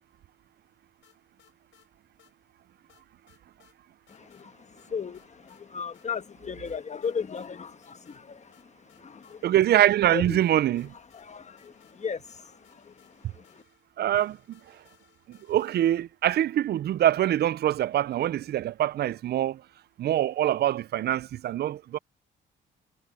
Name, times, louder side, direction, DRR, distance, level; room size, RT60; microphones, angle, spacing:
sound 1, 1.0-1.9 2.2-2.3 2.9-3.8 4.1-4.5 4.8-5.6 5.9-6.1 6.6-7.5 7.8-8.2 8.5-10.1 10.4-16.2, left 11 dB, 75° left, 5.7 m, -63 dB
voice 1, 4.1-9.4 10.1-10.4 11.1-13.6, left 6 dB, 35° left, 1.2 m, -37 dB
voice 2, 9.4-10.9 14.0-14.4 15.5-19.6 20.0-22.0, right 12 dB, 55° right, 0.4 m, -24 dB
cardioid pair, 90°, 20 cm